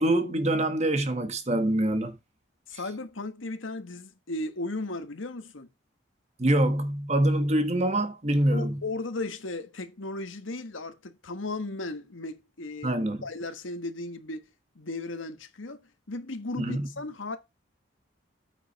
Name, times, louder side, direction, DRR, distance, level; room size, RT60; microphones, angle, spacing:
voice 1, 0.0-2.1 6.4-8.8 12.8-13.2 16.6-16.9, right 1 dB, 35° right, 1.4 m, -25 dB
voice 2, 2.7-5.7 8.5-12.9 13.2-14.5 14.7-15.8 16.1-17.4, left 2 dB, 80° left, 1.4 m, -36 dB
9.0 x 6.4 x 4.1 m
head